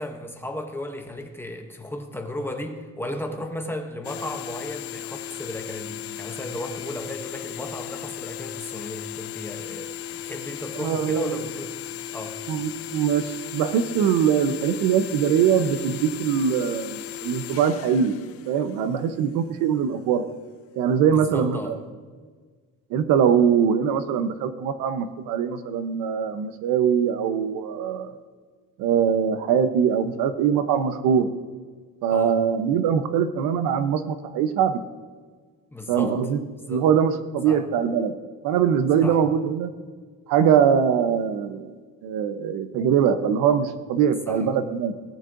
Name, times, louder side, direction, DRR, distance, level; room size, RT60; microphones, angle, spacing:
voice 1, 0.0-11.7 12.1-12.4 21.1-21.8 32.1-32.4 35.7-36.2 36.7-36.9 37.4-37.7 39.0-39.2 44.3-44.5, left 1 dB, 5° left, 4 dB, 0.7 m, -35 dB
sound 1, 4.0-19.3, left 11 dB, 45° left, 0.5 m, -36 dB
voice 2, 10.7-11.3 12.5-18.1 18.5-20.3 20.8-21.8 22.9-28.1 28.8-31.3 32.0-34.8 35.9-38.1 38.4-39.7 40.3-41.7 42.0-44.9, right 8 dB, 85° right, 11 dB, 0.9 m, -22 dB
18.5 x 9.4 x 2.6 m, 1.5 s
cardioid pair, 175°, 33 cm